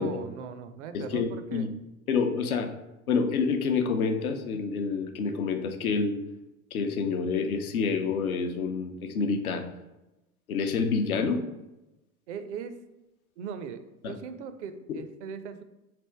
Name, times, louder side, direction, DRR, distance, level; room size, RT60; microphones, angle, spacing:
voice 1, 0.0-1.7 12.3-12.7 13.4-15.6, right 7 dB, 55° right, 10 dB, 0.5 m, -39 dB
voice 2, 0.9-1.7 2.1-2.7 3.1-6.2 6.7-9.6 10.5-11.4 14.0-14.1 14.9-15.0, left 5 dB, 75° left, 6 dB, 0.6 m, -28 dB
3.4 x 2.5 x 4.4 m, 0.97 s
figure-of-eight pair, 85°, 43 cm